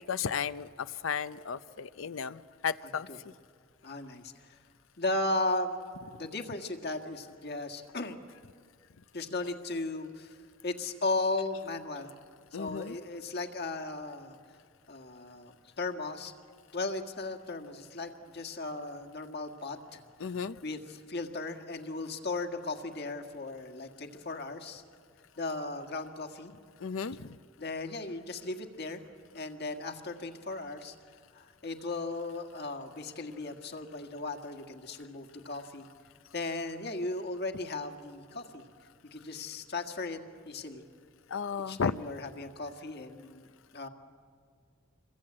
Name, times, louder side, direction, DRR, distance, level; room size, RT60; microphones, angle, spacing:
voice 1, 0.1-0.7 1.0-3.1 12.5-12.9 20.2-20.5 26.8-27.3 41.3-42.0, left 6 dB, 90° left, 14 dB, 0.6 m, -33 dB
voice 2, 3.8-4.6 5.0-5.8 6.1-8.2 9.1-10.4 10.6-12.1 12.5-14.4 14.9-16.3 16.7-20.0 20.6-24.8 25.4-26.5 27.6-29.0 29.3-30.9 31.3-35.9 36.3-38.6 39.1-40.2 40.5-40.8 41.7-43.5 43.7-43.9, left 2 dB, 55° left, 5 dB, 1.8 m, -36 dB
27.0 x 22.0 x 8.7 m, 2.1 s
head